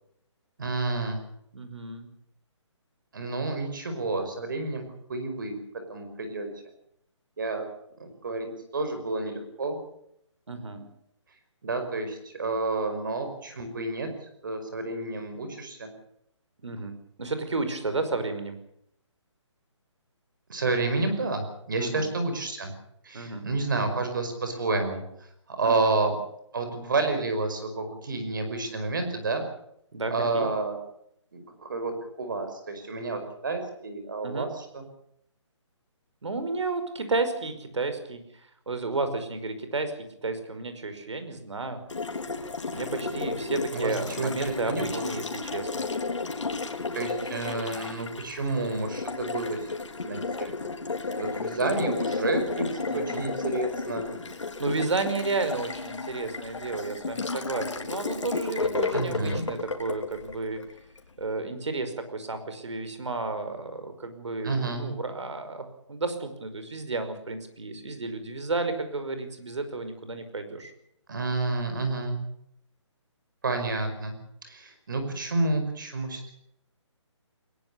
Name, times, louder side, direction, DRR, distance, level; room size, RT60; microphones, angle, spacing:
voice 1, 0.6-1.2 3.1-4.8 5.1-5.6 5.9-6.5 7.4-7.6 8.0-9.8 11.6-14.1 14.4-15.9 20.5-22.7 23.0-25.0 25.5-26.1 26.5-29.4 30.1-30.8 31.3-34.8 43.7-45.1 46.9-49.6 50.0-50.5 51.2-54.1 58.9-59.4 64.4-64.9 71.1-72.2 73.4-76.3, right 3 dB, 40° right, 7 dB, 5.5 m, -30 dB
voice 2, 1.5-2.1 10.5-10.8 16.6-18.6 21.8-22.1 23.1-23.4 25.6-25.9 29.9-30.5 34.2-34.5 36.2-38.2 38.7-39.9 40.2-41.8 42.7-45.8 52.9-53.3 54.6-60.6 61.2-70.7, right 3 dB, 70° right, 9 dB, 5.4 m, -32 dB
Water tap faucet, 41.9-61.1, left 4 dB, 70° left, 3.9 m, -33 dB
21.5 x 20.5 x 7.1 m, 0.74 s
hypercardioid pair, 180°, 16 cm